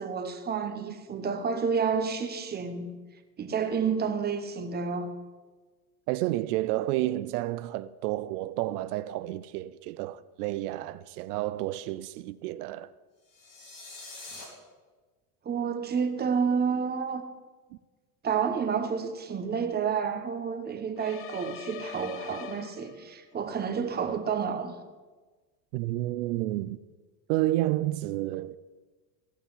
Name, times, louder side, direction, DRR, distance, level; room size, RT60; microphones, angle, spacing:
voice 1, 0.0-2.9 3.4-5.2 15.4-17.2 18.2-24.7, right 6 dB, 20° right, 1.0 m, -30 dB
voice 2, 6.1-12.9 17.7-17.8 25.7-26.8 27.3-28.6, right 16 dB, 85° right, 0.5 m, -30 dB
sound 1, 13.3-14.4, left 3 dB, 70° left, 3.9 m, -44 dB
sound 2, 21.0-23.3, left 10 dB, 30° left, 0.5 m, -43 dB
15.5 x 5.7 x 5.6 m
supercardioid pair, 120°, 45 cm